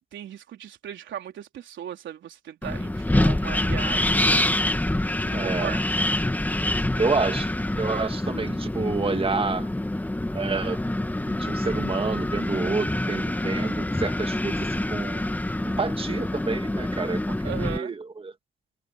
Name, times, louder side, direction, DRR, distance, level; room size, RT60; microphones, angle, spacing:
voice 1, 0.1-4.3 5.2-5.8 17.4-17.9, right 10 dB, 70° right, 4.0 m, -37 dB
Wind, 2.6-17.8, left 1 dB, 10° left, 1.7 m, -26 dB
voice 2, 5.3-5.8 7.0-7.5 7.8-9.7 10.3-10.8 11.3-15.3 15.8-18.3, right 4 dB, 25° right, 2.0 m, -29 dB
cardioid pair, 90°, 20 cm